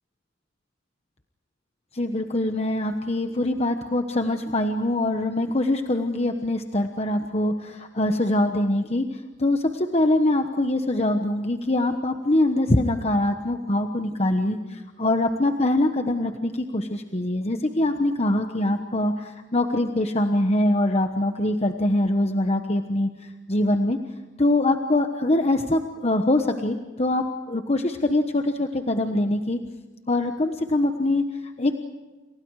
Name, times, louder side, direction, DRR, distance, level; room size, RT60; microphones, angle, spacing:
voice 1, 1.9-24.0 24.4-29.6 30.1-31.7, left 1 dB, 35° left, 6 dB, 1.2 m, -23 dB
30.0 x 29.0 x 4.9 m, 1.3 s
head